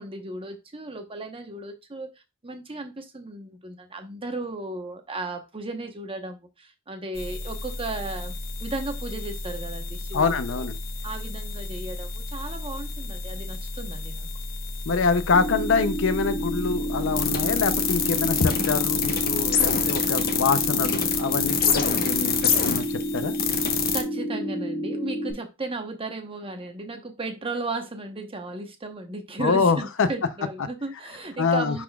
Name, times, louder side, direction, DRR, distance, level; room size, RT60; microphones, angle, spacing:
voice 1, 0.0-2.1 2.4-8.3 8.6-10.3 10.6-10.7 11.0-14.3 23.9-31.8, right 2 dB, 25° right, 1.0 m, -35 dB
sound 1, 7.2-24.0, left 6 dB, 45° left, 1.0 m, -28 dB
voice 2, 10.1-10.8 14.9-23.3 29.4-30.1 31.4-31.8, left 4 dB, 65° left, 0.6 m, -25 dB
sound 2, 15.3-25.3, equal, ahead, 3.8 m, -30 dB
10.5 x 4.1 x 2.3 m
head